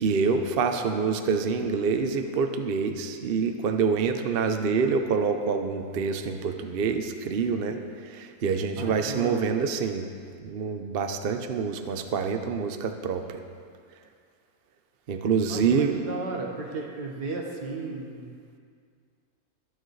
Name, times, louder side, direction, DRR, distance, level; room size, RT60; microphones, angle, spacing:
voice 1, 0.0-7.8 8.1-10.0 10.4-13.2 15.1-16.0, right 5 dB, 50° right, 6 dB, 0.7 m, -26 dB
voice 2, 8.8-9.5 15.5-18.3, right 3 dB, 80° right, 0 dB, 2.0 m, -35 dB
22.5 x 9.3 x 3.2 m, 2.1 s
omnidirectional pair, 1.7 m